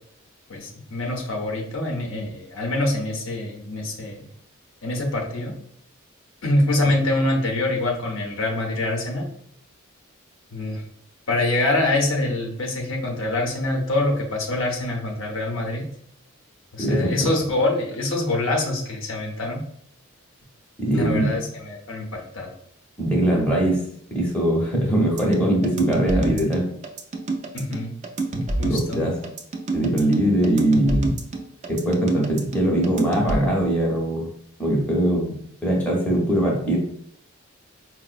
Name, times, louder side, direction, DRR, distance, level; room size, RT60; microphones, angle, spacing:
voice 1, 0.5-4.3 4.8-5.5 6.4-9.3 10.5-10.8 11.3-15.8 16.7-19.6 20.9-22.5 27.5-27.9 28.6-29.0, left 2 dB, 65° left, 1 dB, 0.6 m, -25 dB
voice 2, 16.8-17.1 20.8-21.3 23.0-23.8 24.1-26.6 28.6-29.2 29.7-31.1 31.7-34.3 34.6-35.4 35.6-36.8, right 1 dB, 5° left, -3 dB, 0.7 m, -21 dB
sound 1, 25.2-33.4, right 2 dB, 35° right, 0.4 m, -27 dB
4.5 x 2.1 x 2.4 m, 0.67 s
head